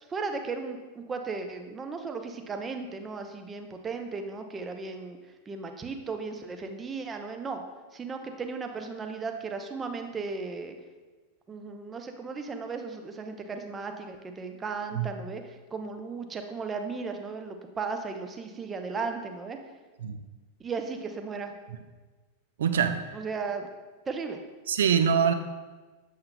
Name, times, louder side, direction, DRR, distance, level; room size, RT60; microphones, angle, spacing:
voice 1, 0.1-5.2 5.5-7.6 7.9-10.8 11.5-19.6 20.6-21.5 23.1-23.7 24.1-24.4, right 4 dB, 20° right, 5 dB, 0.6 m, -36 dB
voice 2, 22.6-23.0 24.7-25.3, right 7 dB, 60° right, 8 dB, 0.4 m, -24 dB
7.7 x 5.6 x 2.2 m, 1.3 s
figure-of-eight pair, 90°, 0 cm